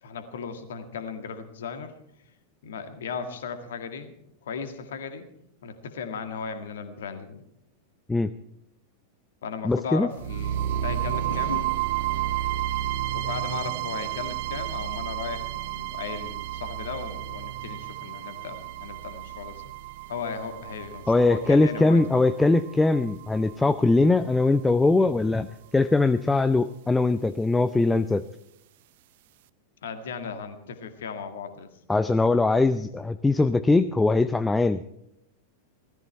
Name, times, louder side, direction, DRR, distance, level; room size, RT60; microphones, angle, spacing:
voice 1, 0.0-1.9 2.6-4.1 4.4-5.3 5.6-7.4 9.4-11.8 13.1-19.7 20.1-22.2 29.8-31.7, left 5 dB, 60° left, 8 dB, 1.9 m, -36 dB
voice 2, 9.6-10.1 21.1-25.5 25.7-28.2 31.9-34.8, left 3 dB, 10° left, 12 dB, 0.5 m, -21 dB
sound 1, 10.2-24.2, right 12 dB, 50° right, 0.5 m, -32 dB
16.5 x 14.5 x 4.4 m, 0.80 s
figure-of-eight pair, 90°, 0 cm